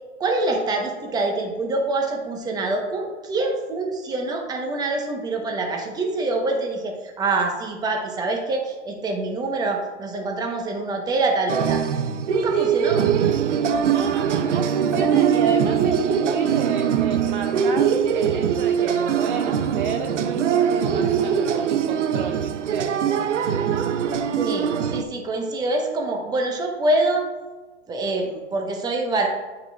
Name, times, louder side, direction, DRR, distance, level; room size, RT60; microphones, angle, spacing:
voice 1, 0.2-11.8 12.3-13.1 24.4-27.3 27.9-29.3, right 2 dB, 10° right, 2 dB, 0.9 m, -25 dB
sound 1, 11.5-25.0, right 7 dB, 80° right, 0.7 m, -22 dB
voice 2, 13.8-22.9, right 6 dB, 45° right, 7 dB, 0.6 m, -31 dB
9.7 x 6.7 x 2.4 m, 1.3 s
hypercardioid pair, 135°, 36 cm